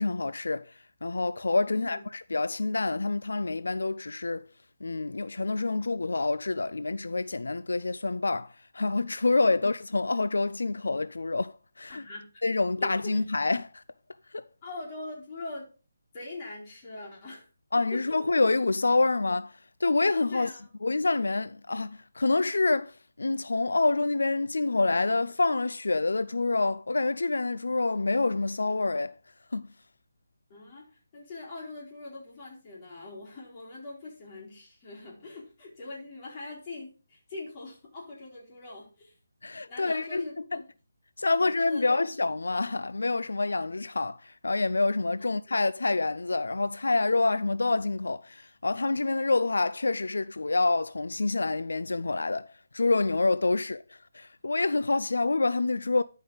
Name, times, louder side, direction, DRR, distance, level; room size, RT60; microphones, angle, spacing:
voice 1, 0.0-4.5 4.8-12.0 12.4-13.8 14.3-14.5 17.7-19.5 19.8-20.5 20.8-29.1 29.5-29.7 39.4-40.2 40.5-40.6 41.2-52.5 52.7-56.0, left 3 dB, 85° left, 0.4 m, -27 dB
voice 2, 1.7-2.0 11.9-12.4 12.8-13.2 14.6-15.7 16.1-17.5 17.9-18.2 20.3-20.7 30.5-39.1 39.7-40.6 41.3-42.0 45.2-45.3, left 2 dB, 25° left, 4.1 m, -42 dB
12.0 x 5.3 x 3.9 m
hypercardioid pair, 165°, 0 cm